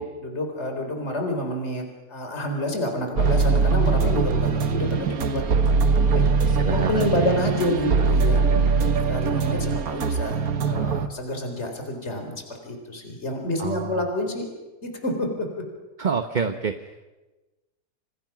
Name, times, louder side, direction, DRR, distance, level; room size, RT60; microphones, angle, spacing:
voice 1, 0.2-1.8 2.1-5.4 6.1-6.3 6.7-8.4 9.0-10.4 10.6-12.3 12.6-14.5 14.8-15.5, left 1 dB, 40° left, 3 dB, 4.3 m, -28 dB
sound 1, 3.2-11.1, right 4 dB, 60° right, 1.6 m, -22 dB
voice 2, 6.4-7.4 7.8-8.1 8.5-9.0 13.6-14.0 16.0-16.9, right 5 dB, 35° right, 8 dB, 0.9 m, -28 dB
29.0 x 28.0 x 6.0 m, 1.1 s
omnidirectional pair, 1.8 m